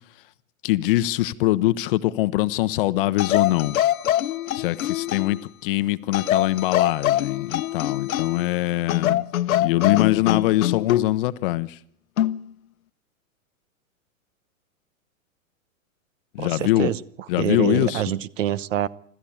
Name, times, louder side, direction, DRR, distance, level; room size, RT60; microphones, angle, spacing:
voice 1, 0.6-3.8 4.5-9.2 9.6-11.8 16.3-16.9 17.3-18.0, left 16 dB, 40° left, 0.8 m, -23 dB
sound 1, 3.2-5.4 6.1-8.5 8.9-11.1 12.2-12.4, left 12 dB, 75° left, 0.9 m, -24 dB
voice 2, 16.4-17.0 17.4-18.9, right 11 dB, 60° right, 1.1 m, -25 dB
26.0 x 13.5 x 8.8 m
hypercardioid pair, 145°, 42 cm